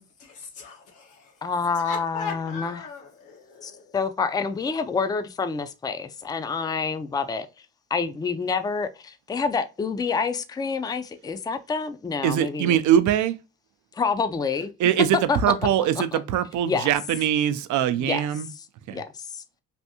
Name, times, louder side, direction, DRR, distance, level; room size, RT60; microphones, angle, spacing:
voice 1, 0.0-1.5 1.7-3.9, left 5 dB, 85° left, 1.2 m, -39 dB
voice 2, 1.4-2.8 3.6-7.5 7.9-12.8 13.9-14.7 15.3-15.4 16.1-16.2 16.7-16.9 18.0-18.2 18.9-19.4, left 5 dB, 15° left, 0.3 m, -27 dB
voice 3, 12.2-13.4 14.8-18.5 18.9-19.0, right 10 dB, 75° right, 0.5 m, -22 dB
3.4 x 2.6 x 2.7 m
cardioid pair, 90°, 30 cm